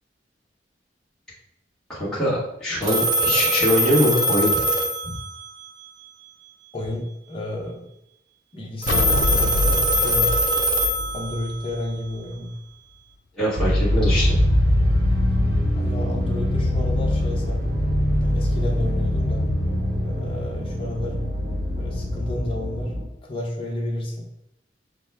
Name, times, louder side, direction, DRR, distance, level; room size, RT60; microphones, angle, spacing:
voice 1, 1.9-4.5 5.0-5.2 13.4-14.3, left 1 dB, 5° left, -10 dB, 1.3 m, -23 dB
Telephone, 2.8-5.7 8.8-11.7, right 1 dB, 25° right, 0.6 m, -22 dB
voice 2, 6.7-7.9 8.5-10.3 11.1-12.5 15.7-17.8 18.1-19.4 20.0-21.2 21.8-22.9 23.2-24.3, left 1 dB, 30° left, -2 dB, 0.9 m, -31 dB
sound 1, 8.9-12.3, left 3 dB, 90° left, 0.4 m, -26 dB
sound 2, 13.6-23.0, left 1 dB, 55° right, 1.0 m, -22 dB
6.1 x 2.1 x 3.4 m, 0.80 s
head